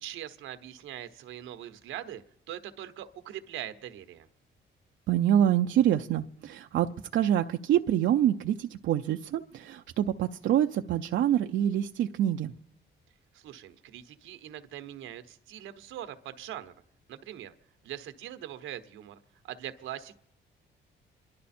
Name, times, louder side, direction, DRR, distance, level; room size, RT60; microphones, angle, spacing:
voice 1, 0.0-4.3 13.3-16.7 17.1-17.5 17.8-19.2 19.4-20.2, right 11 dB, 90° right, 1.0 m, -42 dB
voice 2, 5.1-12.5, right 11 dB, 70° right, 0.6 m, -26 dB
26.5 x 11.5 x 4.3 m
cardioid pair, 90°, 20 cm